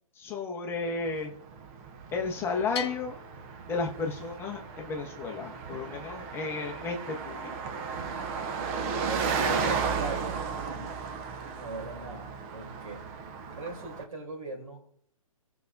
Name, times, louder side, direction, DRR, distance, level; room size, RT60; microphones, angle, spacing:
voice 1, 0.2-1.3 2.1-3.2 3.7-7.5, left 4 dB, 10° left, 1 dB, 0.9 m, -33 dB
Car passing by, 0.8-14.0, right 5 dB, 25° right, 0.7 m, -35 dB
Bell, 2.8-4.5, left 9 dB, 45° left, 0.5 m, -41 dB
voice 2, 8.9-10.4 10.7-11.0 11.4-13.1 13.5-14.8, right 3 dB, 70° right, 0 dB, 3.2 m, -40 dB
17.0 x 5.9 x 2.6 m, 0.67 s
figure-of-eight pair, 140°, 19 cm